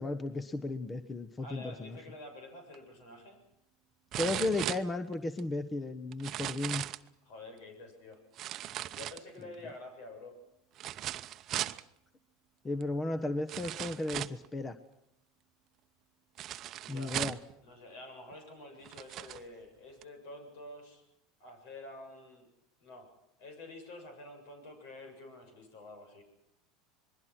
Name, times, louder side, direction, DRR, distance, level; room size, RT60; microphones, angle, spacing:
voice 1, 0.0-2.0 4.2-6.8 12.6-14.8 16.9-17.4, left 2 dB, 20° left, 12 dB, 1.2 m, -34 dB
voice 2, 1.4-3.4 7.2-8.2 8.9-10.4 16.8-17.2 17.6-21.0 21.4-22.5 22.8-23.1 23.4-26.3, left 2 dB, 70° left, 6 dB, 7.4 m, -48 dB
sound 1, 2.7-2.8 4.1-5.4 6.1-7.1 8.4-9.5 10.8-11.8 12.8-12.9 13.5-14.5 16.4-17.5 18.3-18.4 18.8-19.4 20.0-20.1, right 13 dB, 45° right, 0.8 m, -38 dB
27.0 x 21.0 x 6.1 m, 0.80 s
supercardioid pair, 105°, 0 cm